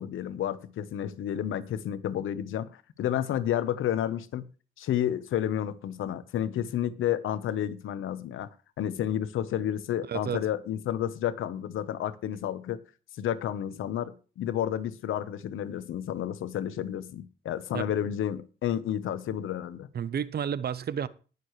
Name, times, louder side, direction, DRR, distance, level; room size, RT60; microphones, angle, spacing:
voice 1, 0.0-4.5 4.8-12.8 13.2-19.9, left 10 dB, 80° left, 1.0 m, -31 dB
voice 2, 10.1-10.4 17.7-17.9 19.9-21.1, right 8 dB, 50° right, 0.8 m, -31 dB
19.0 x 6.8 x 3.2 m
cardioid pair, 95°, 20 cm